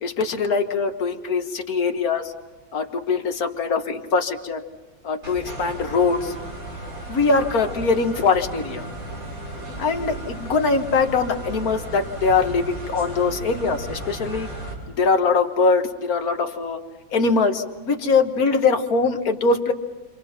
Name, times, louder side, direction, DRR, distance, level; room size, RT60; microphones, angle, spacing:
voice 1, 0.0-2.3 2.7-4.6 5.0-6.3 7.1-8.9 9.8-14.5 15.0-16.8 17.1-19.7, left 4 dB, 50° left, 5 dB, 1.8 m, -22 dB
sound 1, 5.2-14.7, right 1 dB, 65° right, 7.2 m, -35 dB
29.5 x 26.5 x 5.9 m, 1.2 s
omnidirectional pair, 2.2 m